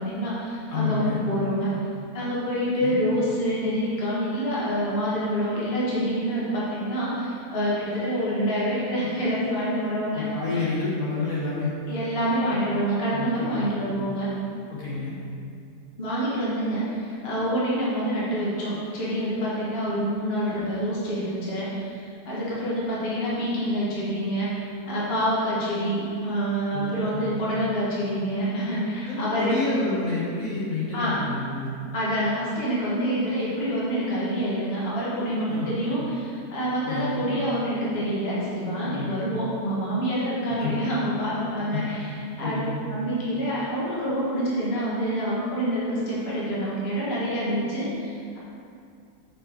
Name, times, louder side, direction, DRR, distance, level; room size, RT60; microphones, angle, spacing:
voice 1, 0.0-1.7 2.1-10.3 10.5-10.7 11.9-14.3 16.0-29.6 30.9-31.2 31.9-42.1 42.4-42.6 42.9-48.4, equal, 40° left, -8 dB, 1.7 m, -27 dB
voice 2, 0.7-1.2 2.8-3.0 10.1-11.7 13.1-13.8 14.7-15.2 26.7-27.5 29.0-31.7 35.5-35.8 36.9-37.3 38.8-39.2 40.6-40.8 41.7-41.8 42.4-42.8, left 3 dB, 60° left, -8 dB, 2.0 m, -29 dB
7.4 x 5.3 x 4.5 m, 2.4 s
omnidirectional pair, 1.7 m